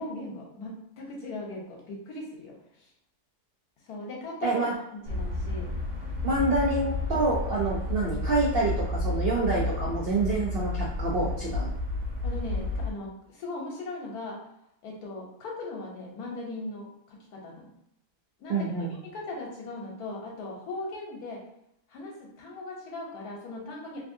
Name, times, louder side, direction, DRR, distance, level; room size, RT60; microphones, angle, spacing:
voice 1, 0.0-2.9 3.8-4.6 4.9-5.7 12.2-14.4 14.8-17.7 18.4-21.4 21.9-24.0, left 2 dB, 75° left, -1 dB, 1.3 m, -39 dB
voice 2, 4.4-4.7 6.2-11.7 18.5-18.9, right 2 dB, 85° right, -4 dB, 0.5 m, -27 dB
sound 1, 5.1-12.9, left 2 dB, 55° right, 1.1 m, -31 dB
3.1 x 2.6 x 2.6 m, 0.79 s
omnidirectional pair, 1.7 m